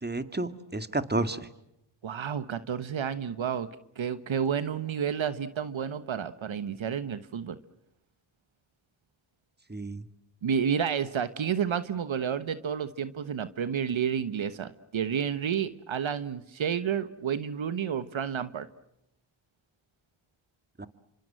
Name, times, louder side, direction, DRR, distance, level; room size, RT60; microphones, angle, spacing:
voice 1, 0.0-1.4 9.7-10.0 20.8-20.9, right 2 dB, 20° right, 11 dB, 2.3 m, -31 dB
voice 2, 2.0-3.7 4.0-7.6 10.4-18.7, right 8 dB, 70° right, 13 dB, 1.3 m, -30 dB
27.0 x 25.5 x 7.7 m, 0.82 s
cardioid pair, 40°, 48 cm